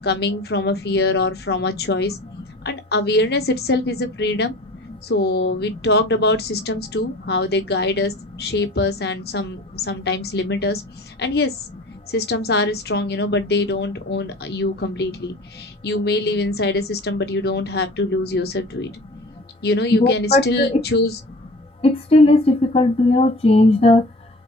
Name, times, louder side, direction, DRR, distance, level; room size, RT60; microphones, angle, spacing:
voice 1, 0.0-2.1 2.6-4.5 5.0-8.1 8.4-10.8 11.2-11.5 12.1-18.9 19.6-21.1, left 2 dB, 60° left, 1.0 m, -22 dB
voice 2, 20.0-20.8 21.8-24.3, left 2 dB, 30° left, 0.4 m, -16 dB
4.4 x 3.6 x 2.9 m
head